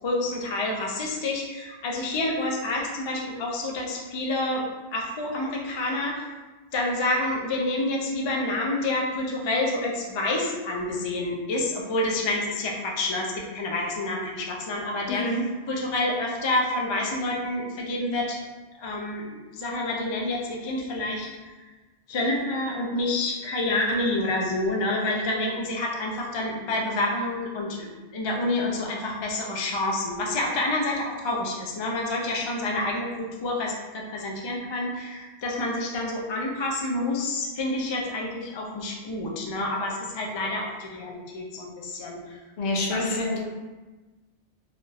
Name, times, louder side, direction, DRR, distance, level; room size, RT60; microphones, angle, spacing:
voice 1, 0.0-6.2 6.7-15.3 15.7-18.4 18.8-21.3 22.1-42.4 42.8-43.2, left 2 dB, 45° left, -1 dB, 0.3 m, -28 dB
voice 2, 15.1-15.4 42.6-43.4, left 2 dB, 80° left, -1 dB, 0.9 m, -27 dB
3.4 x 2.6 x 2.4 m, 1.2 s
omnidirectional pair, 1.1 m